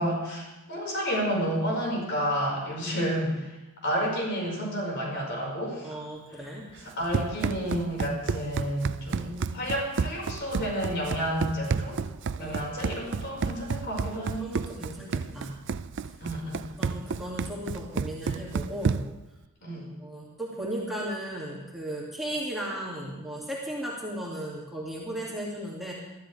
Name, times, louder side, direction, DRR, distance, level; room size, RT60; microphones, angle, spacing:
voice 1, 0.0-3.5 3.8-5.9 6.8-12.0 12.4-14.5 16.2-16.7 19.6-19.9, equal, 55° left, -2 dB, 5.4 m, -30 dB
voice 2, 5.8-6.6 9.0-9.7 12.4-12.6 14.2-15.6 16.8-19.1 19.7-25.9, right 1 dB, ahead, -6 dB, 2.5 m, -36 dB
Run, 6.8-19.2, right 5 dB, 55° right, 0.4 m, -31 dB
22.5 x 13.5 x 3.5 m, 1.0 s
head